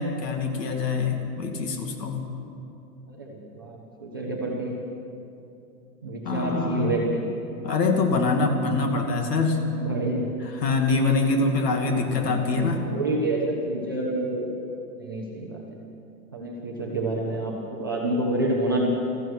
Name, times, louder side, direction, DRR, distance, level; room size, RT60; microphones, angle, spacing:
voice 1, 0.0-2.2 6.2-6.9 7.6-9.6 10.6-12.9, left 3 dB, 80° left, 4 dB, 2.6 m, -24 dB
voice 2, 3.1-4.7 6.0-7.2 9.0-9.1 9.7-10.3 12.1-14.5 15.0-15.6 16.3-18.9, right 2 dB, 15° right, -4 dB, 0.5 m, -28 dB
16.0 x 14.0 x 6.2 m, 2.7 s
hypercardioid pair, 175°, 48 cm